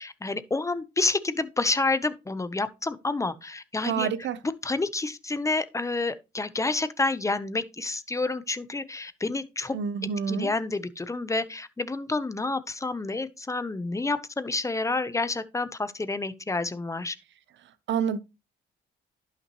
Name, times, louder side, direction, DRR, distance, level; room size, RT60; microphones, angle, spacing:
voice 1, 0.0-4.1 4.6-9.7 10.3-17.1, left 3 dB, 15° left, 0.9 m, -29 dB
voice 2, 3.8-4.4 9.7-10.5 17.9-18.2, right 7 dB, 65° right, 0.9 m, -28 dB
11.0 x 6.0 x 3.1 m
cardioid pair, 90°, 20 cm